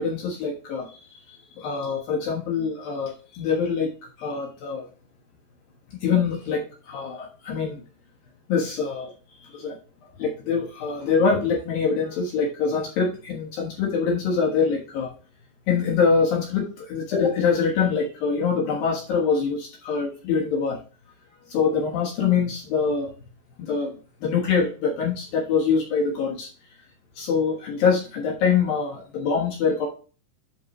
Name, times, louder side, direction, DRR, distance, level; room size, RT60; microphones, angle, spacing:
voice 1, 0.0-3.9 4.2-4.9 6.0-7.8 8.5-9.1 9.4-9.8 10.2-15.1 15.7-20.8 21.5-23.1 23.6-26.5 27.2-29.9, left 5 dB, 65° left, -1 dB, 2.6 m, -24 dB
10.5 x 4.6 x 3.0 m, 0.36 s
omnidirectional pair, 5.6 m